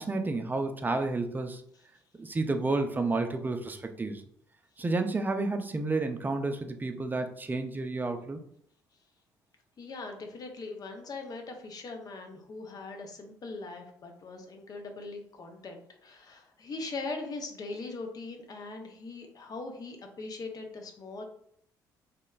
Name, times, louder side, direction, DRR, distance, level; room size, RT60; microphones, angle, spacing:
voice 1, 0.0-1.6 2.2-4.2 4.8-8.4, right 3 dB, 20° right, 6 dB, 0.4 m, -30 dB
voice 2, 9.8-21.2, left 3 dB, 45° left, 4 dB, 0.6 m, -41 dB
2.9 x 2.1 x 2.3 m, 0.67 s
hypercardioid pair, 55°, 9 cm